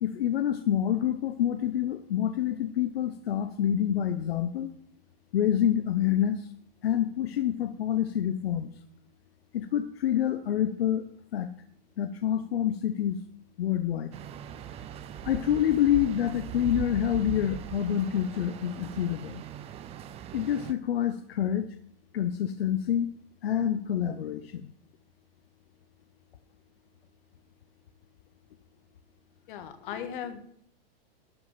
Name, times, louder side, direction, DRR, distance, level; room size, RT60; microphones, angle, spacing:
voice 1, 0.0-4.7 5.3-6.4 6.8-8.7 9.5-11.1 11.3-11.5 12.0-13.2 13.6-14.1 15.2-19.4 20.3-21.7 22.1-23.1 23.4-24.7, left 10 dB, 90° left, 10 dB, 0.8 m, -27 dB
sound 1, 14.1-20.7, right 9 dB, 20° right, 0.5 m, -40 dB
voice 2, 29.5-30.4, left 8 dB, 60° left, 8 dB, 1.7 m, -37 dB
12.5 x 5.2 x 7.4 m, 0.65 s
hypercardioid pair, 140°, 29 cm